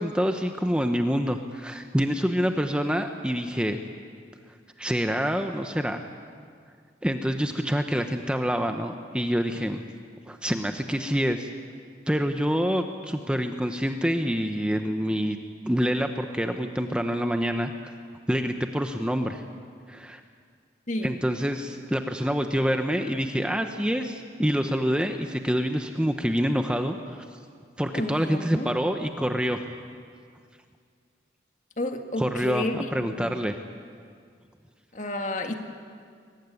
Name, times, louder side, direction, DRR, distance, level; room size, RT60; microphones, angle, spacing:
voice 1, 0.0-3.8 4.8-6.0 7.0-9.8 10.3-11.5 12.1-15.4 15.6-17.9 18.3-19.4 19.9-20.2 21.0-27.2 27.8-29.8 32.2-33.6, equal, 5° right, 5 dB, 0.8 m, -26 dB
voice 2, 27.9-28.7 31.8-33.3 34.9-35.5, left 2 dB, 40° left, 5 dB, 1.7 m, -31 dB
23.0 x 19.5 x 9.8 m, 2.1 s
head